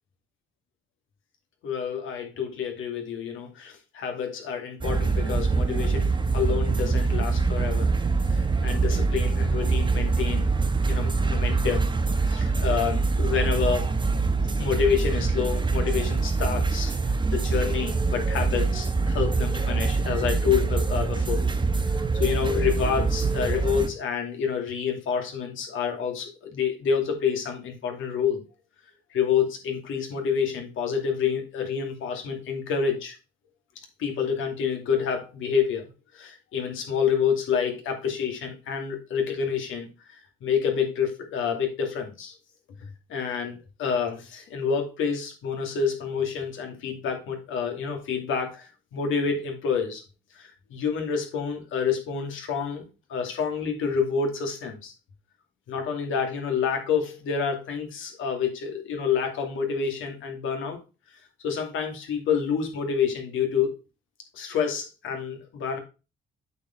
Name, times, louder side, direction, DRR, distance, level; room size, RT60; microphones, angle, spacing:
voice 1, 1.6-7.9 8.3-10.5 10.8-11.9 12.2-13.9 14.6-16.9 17.3-21.4 21.9-28.4 29.1-33.1 34.0-42.3 43.1-50.0 50.3-54.9 55.7-60.8 61.4-63.7 64.3-65.8, left 7 dB, 80° left, 3 dB, 2.4 m, -28 dB
sound 1, 4.8-23.9, right 4 dB, 25° right, 1.4 m, -24 dB
8.3 x 4.7 x 4.5 m, 0.30 s
cardioid pair, 90°, 20 cm